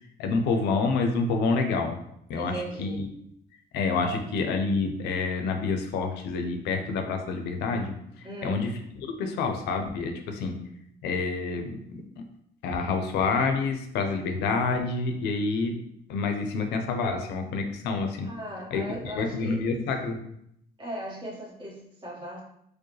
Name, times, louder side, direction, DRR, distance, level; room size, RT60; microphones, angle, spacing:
voice 1, 0.2-2.0 2.3-3.1 3.7-8.7 9.0-10.6 11.0-12.2 12.6-15.8 16.1-18.3 18.7-20.2, left 4 dB, 85° left, 5 dB, 0.6 m, -28 dB
voice 2, 2.4-3.1 8.2-8.7 18.2-19.6 20.8-22.4, right 1 dB, 30° right, -5 dB, 1.4 m, -38 dB
4.5 x 2.2 x 3.1 m, 0.74 s
cardioid pair, 110°, 17 cm